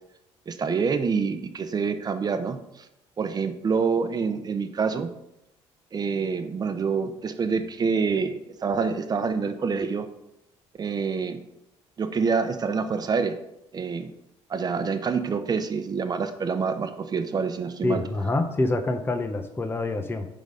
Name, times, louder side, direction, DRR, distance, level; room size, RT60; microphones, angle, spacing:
voice 1, 0.5-2.8 3.2-5.1 5.9-10.1 10.8-11.4 12.0-13.3 13.7-14.1 14.5-18.0, right 5 dB, 35° right, 9 dB, 0.9 m, -26 dB
voice 2, 17.8-20.3, left 2 dB, 20° left, 6 dB, 0.8 m, -26 dB
10.5 x 4.0 x 5.1 m, 0.84 s
cardioid pair, 100°, 11 cm